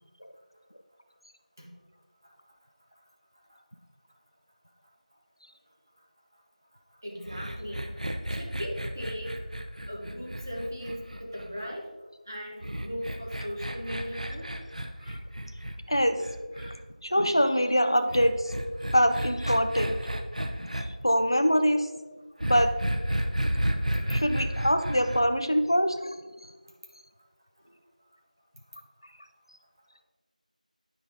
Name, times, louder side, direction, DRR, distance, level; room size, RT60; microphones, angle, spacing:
voice 1, 7.0-8.0 8.3-9.3 9.9-11.9 12.3-14.5, equal, 25° right, -3 dB, 1.0 m, -38 dB
sound 1, 7.3-11.7 12.6-16.7 18.1-20.8 22.4-25.2, right 1 dB, 60° right, 0.7 m, -32 dB
voice 2, 15.9-16.2 16.6-16.8 17.0-18.5 18.9-20.0 20.6-21.9 22.4-22.7 24.1-26.2, equal, 35° left, 8 dB, 0.4 m, -24 dB
9.5 x 5.0 x 3.6 m, 1.3 s
figure-of-eight pair, 180°, 4 cm